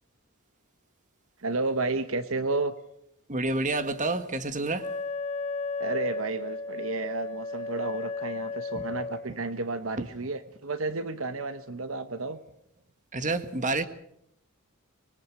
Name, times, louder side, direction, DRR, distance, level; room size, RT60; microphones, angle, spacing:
voice 1, 1.4-2.7 5.8-12.4, right 3 dB, 70° right, 11 dB, 1.1 m, -31 dB
voice 2, 3.3-4.9 8.7-8.8 9.3-9.4 13.1-13.9, right 2 dB, 35° right, 10 dB, 1.6 m, -29 dB
Wind instrument woodwind instrument, 4.8-9.3, left 3 dB, 30° left, 6.1 m, -34 dB
25.0 x 21.5 x 6.2 m, 0.74 s
head